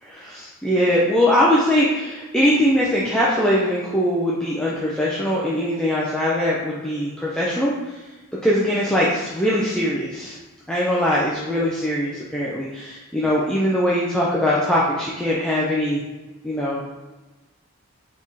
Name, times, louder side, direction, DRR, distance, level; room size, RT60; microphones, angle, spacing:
voice 1, 0.0-7.7 8.4-10.4 10.7-16.0 16.4-16.9, equal, 5° left, -6 dB, 0.4 m, -21 dB
4.0 x 3.1 x 2.7 m, 1.2 s
head